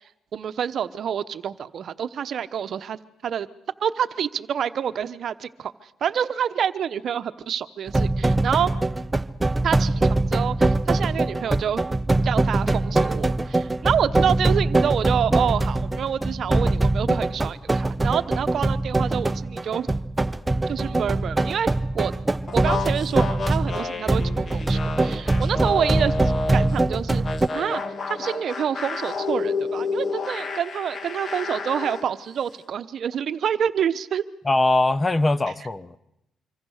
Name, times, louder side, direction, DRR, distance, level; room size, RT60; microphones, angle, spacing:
voice 1, 0.3-3.5 3.8-5.7 6.0-8.7 9.6-11.8 12.2-19.9 20.7-22.1 22.5-26.2 26.5-27.2 27.5-27.8 28.1-34.2, right 8 dB, 60° right, 0.9 m, -27 dB
sound 1, 7.9-27.5, right 2 dB, 15° right, 0.8 m, -23 dB
sound 2, 22.5-26.8 27.2-32.1, left 4 dB, 40° left, 1.9 m, -30 dB
sound 3, 23.3-23.7 24.1-26.7, left 3 dB, 60° left, 5.7 m, -55 dB
voice 2, 34.4-36.0, left 2 dB, 20° left, 0.9 m, -21 dB
25.5 x 25.0 x 6.5 m
cardioid pair, 90°, 0 cm